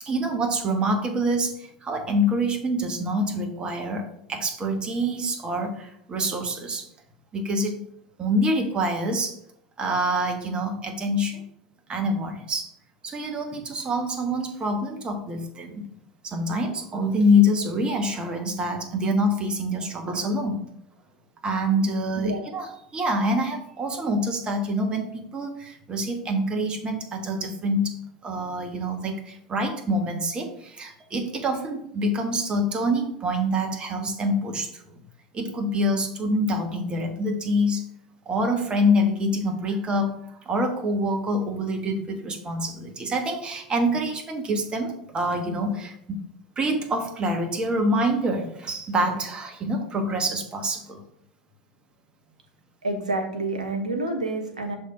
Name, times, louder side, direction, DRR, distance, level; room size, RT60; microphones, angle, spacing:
voice 1, 0.0-6.9 7.3-7.8 8.2-9.4 9.8-11.4 11.9-12.7 13.0-15.8 16.2-20.6 21.4-35.0 35.3-37.8 38.2-46.2 46.6-51.0, equal, 25° right, 4 dB, 1.2 m, -26 dB
voice 2, 22.1-22.5 52.8-54.8, right 2 dB, 85° right, 3 dB, 1.0 m, -28 dB
6.2 x 3.4 x 5.1 m, 0.71 s
figure-of-eight pair, 75°, 4 cm